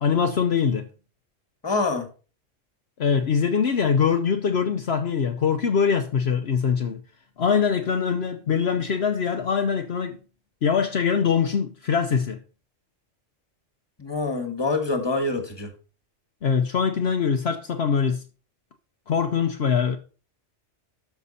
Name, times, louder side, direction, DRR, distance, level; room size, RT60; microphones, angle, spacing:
voice 1, 0.0-0.8 3.0-7.0 7.4-10.2 10.6-12.4 16.4-18.2 19.1-20.0, left 6 dB, 60° left, 1.0 m, -23 dB
voice 2, 1.6-2.1 14.0-15.7, left 3 dB, 20° left, 1.7 m, -25 dB
12.5 x 6.0 x 4.2 m
omnidirectional pair, 1.2 m